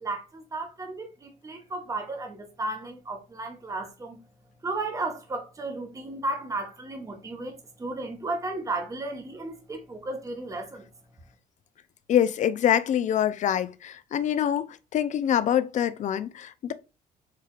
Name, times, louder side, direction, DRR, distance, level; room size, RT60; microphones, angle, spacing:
voice 1, 0.0-4.2 4.6-10.8, right 2 dB, 20° right, 0.9 m, -34 dB
voice 2, 12.1-16.7, left 10 dB, 45° left, 0.4 m, -25 dB
4.5 x 3.3 x 2.3 m
cardioid pair, 110°, 17 cm